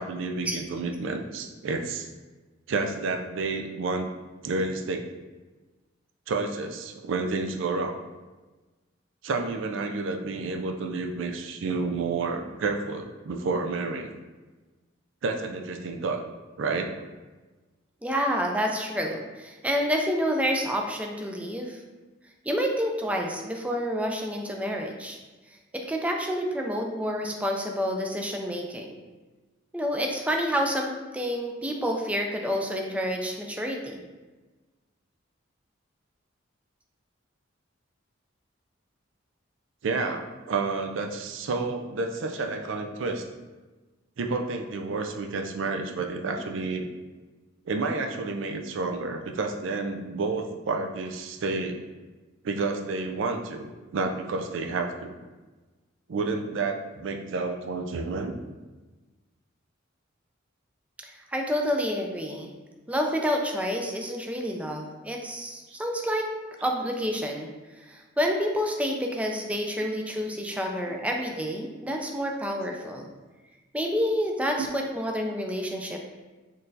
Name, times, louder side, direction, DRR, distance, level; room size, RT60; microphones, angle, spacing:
voice 1, 0.0-2.1 2.7-4.1 4.4-5.1 6.3-8.0 9.2-14.1 15.2-16.2 16.6-16.9 39.8-43.3 44.2-46.9 47.7-51.8 52.4-55.2 56.1-58.4 65.7-65.8 70.9-71.0 74.6-74.7, right 3 dB, 70° right, 4 dB, 0.4 m, -30 dB
voice 2, 18.0-21.8 22.4-25.2 25.7-28.9 29.7-34.0 61.0-62.5 62.9-66.3 66.6-67.5 67.8-73.1 73.7-76.0, equal, 5° right, 2 dB, 0.3 m, -28 dB
4.2 x 3.2 x 2.7 m, 1.2 s
head